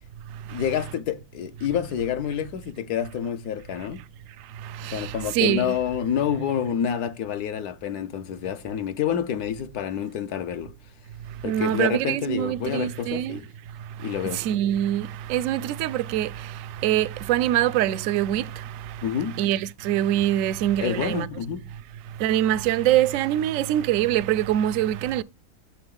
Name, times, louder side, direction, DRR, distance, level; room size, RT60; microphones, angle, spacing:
voice 1, 0.5-4.0 4.9-10.7 11.4-13.5 14.0-14.4 19.0-19.4 20.8-21.7, left 9 dB, 70° left, 1.2 m, -28 dB
voice 2, 4.6-5.7 11.4-13.4 14.2-16.5 16.8-18.6 19.4-21.3 22.2-25.2, right 12 dB, 70° right, 0.8 m, -24 dB
7.1 x 6.6 x 3.7 m
omnidirectional pair, 1.8 m